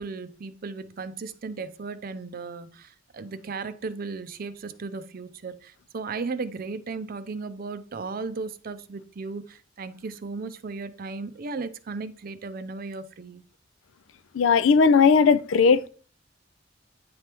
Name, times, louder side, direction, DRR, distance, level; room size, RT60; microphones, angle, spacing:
voice 1, 0.0-13.4, right 4 dB, 45° right, 0.5 m, -36 dB
voice 2, 14.3-15.9, left 5 dB, 85° left, 0.4 m, -18 dB
9.4 x 3.4 x 2.9 m
head